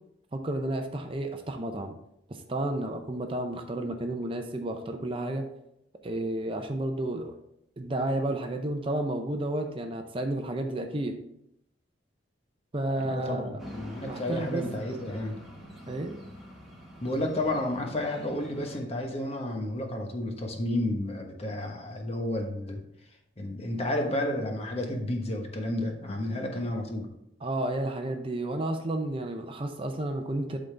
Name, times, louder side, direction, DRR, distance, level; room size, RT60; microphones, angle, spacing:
voice 1, 0.3-1.9 2.3-5.5 6.0-7.4 7.8-11.2 12.7-13.6 14.0-14.6 15.9-16.2 27.4-30.6, right 1 dB, 30° right, 5 dB, 0.6 m, -31 dB
voice 2, 13.0-15.4 17.0-22.8 23.4-27.1, left 1 dB, 35° left, 2 dB, 1.1 m, -31 dB
sound 1, 13.6-18.8, equal, ahead, 1.4 m, -45 dB
11.5 x 3.9 x 3.3 m, 0.79 s
head